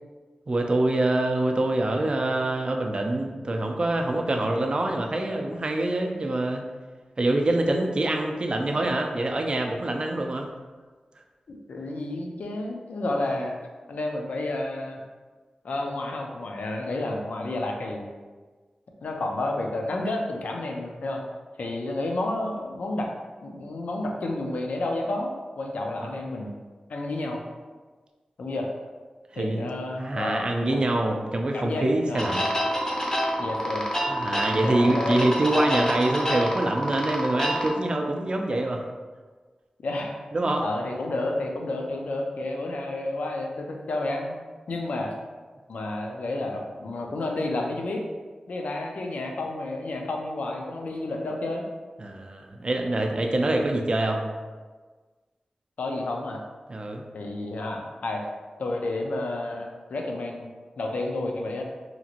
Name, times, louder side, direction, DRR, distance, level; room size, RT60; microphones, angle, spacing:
voice 1, 0.5-6.6 7.2-10.5 29.3-29.7 30.0-32.5 34.1-38.8 40.3-40.6 52.0-54.2 56.7-57.0, right 2 dB, 40° right, 2 dB, 0.3 m, -25 dB
voice 2, 11.5-13.6 13.9-15.0 15.6-18.1 19.0-21.2 21.6-23.1 23.4-26.5 26.9-27.5 28.4-28.7 29.4-30.8 31.5-32.4 33.4-33.9 34.5-35.2 38.5-38.7 39.8-44.4 44.7-45.1 45.7-48.0 48.5-51.6 55.8-56.4 57.1-58.2 58.6-60.5 60.8-61.6, left 2 dB, 90° left, 1 dB, 0.4 m, -30 dB
sound 1, 32.1-37.7, equal, 25° left, 0.5 m, -27 dB
2.8 x 2.5 x 2.7 m, 1.4 s
wide cardioid pair, 95°, 2 cm